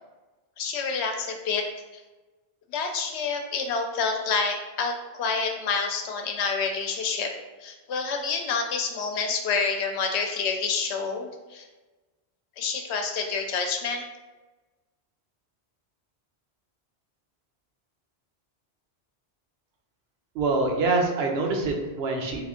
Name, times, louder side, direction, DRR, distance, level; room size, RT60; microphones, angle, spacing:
voice 1, 0.6-1.7 2.7-7.3 7.6-11.6 12.6-14.0, left 5 dB, 80° left, 4 dB, 0.9 m, -28 dB
voice 2, 20.3-22.4, right 3 dB, 75° right, 1 dB, 0.9 m, -25 dB
3.4 x 3.0 x 3.6 m, 1.2 s
omnidirectional pair, 1.1 m